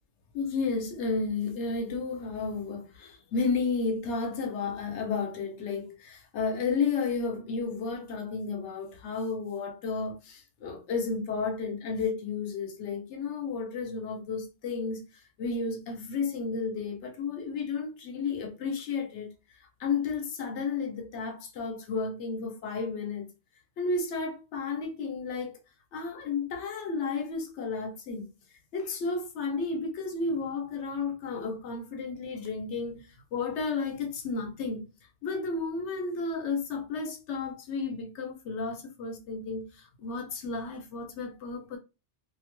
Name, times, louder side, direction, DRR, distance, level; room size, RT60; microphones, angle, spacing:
voice 1, 0.3-15.1 15.4-19.3 19.8-23.3 23.8-25.6 25.9-28.3 28.7-34.9 35.2-41.8, left 4 dB, 80° left, 1.0 m, -32 dB
2.5 x 2.1 x 2.9 m
omnidirectional pair, 1.2 m